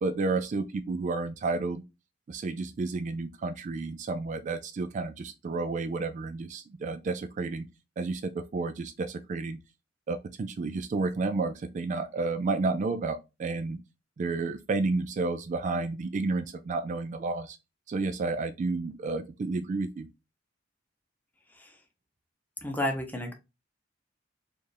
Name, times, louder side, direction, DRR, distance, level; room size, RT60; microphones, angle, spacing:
voice 1, 0.0-1.8 2.3-7.7 8.0-9.6 10.1-13.8 14.2-17.6 17.9-20.1, right 3 dB, 40° right, 0.3 m, -31 dB
voice 2, 22.6-23.3, left 1 dB, 10° left, 0.8 m, -31 dB
4.5 x 2.5 x 3.3 m
head